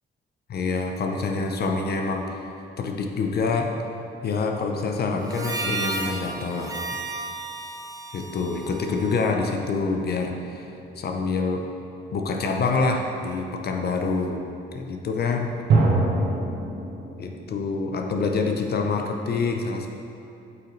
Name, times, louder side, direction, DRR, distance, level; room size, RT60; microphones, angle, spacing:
voice 1, 0.5-2.4 2.8-3.7 4.2-6.8 8.1-10.7 11.0-11.7 12.1-14.4 14.7-15.5 17.2-19.9, left 4 dB, 55° left, 3 dB, 0.7 m, -26 dB
Harmonica, 5.2-9.8, right 2 dB, 20° right, 0.7 m, -33 dB
sound 1, 9.9-11.0 15.7-17.6, right 3 dB, 65° right, 1.3 m, -25 dB
7.8 x 5.7 x 3.2 m, 2.7 s
cardioid pair, 90°, 20 cm